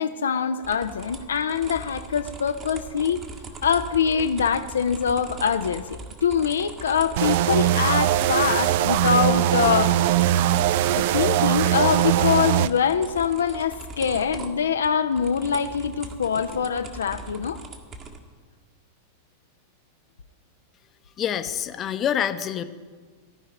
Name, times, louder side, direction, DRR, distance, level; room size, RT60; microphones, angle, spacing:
voice 1, 0.0-3.2 3.6-5.8 6.2-9.9 10.9-17.6, left 7 dB, 70° left, 9 dB, 0.4 m, -24 dB
sound 1, 0.6-18.2, right 2 dB, 30° right, 1.4 m, -40 dB
sound 2, 7.2-12.7, right 12 dB, 50° right, 0.4 m, -21 dB
voice 2, 21.2-22.6, left 9 dB, 30° left, 11 dB, 0.7 m, -26 dB
15.0 x 5.7 x 9.1 m, 1.5 s
figure-of-eight pair, 90°, 0 cm